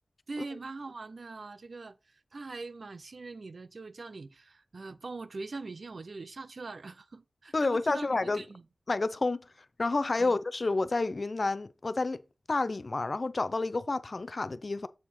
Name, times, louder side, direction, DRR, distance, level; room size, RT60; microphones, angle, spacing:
voice 1, 0.3-8.7 10.2-10.4, right 3 dB, 70° right, 0.5 m, -42 dB
voice 2, 7.5-8.4 8.9-9.4 9.8-12.2 12.5-14.9, left 3 dB, 55° left, 0.5 m, -29 dB
7.3 x 4.7 x 4.2 m
cardioid pair, 50°, 0 cm